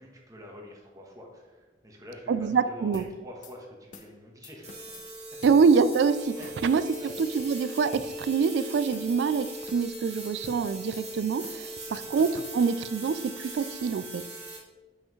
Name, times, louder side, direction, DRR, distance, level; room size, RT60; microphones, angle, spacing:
voice 1, 0.0-4.7 6.4-7.1 11.9-12.2, left 1 dB, 20° right, -1 dB, 1.2 m, -46 dB
voice 2, 2.3-3.0 5.4-6.8 7.3-14.2, right 5 dB, 70° right, 13 dB, 0.3 m, -25 dB
sound 1, 2.9-3.1 3.4-3.6 3.9-4.1 4.4-5.1 5.4-5.6 5.9-6.0 6.4-6.6 6.9-7.6 7.9-8.1 8.4-8.6 8.9-9.1 9.4-10.1 10.4-10.6 10.9-11.1 11.4-11.6 11.9-12.6, left 4 dB, 45° left, 0.6 m, -48 dB
sound 2, 4.6-14.6, right 1 dB, 35° right, 1.6 m, -40 dB
7.9 x 5.6 x 3.1 m, 1.3 s
head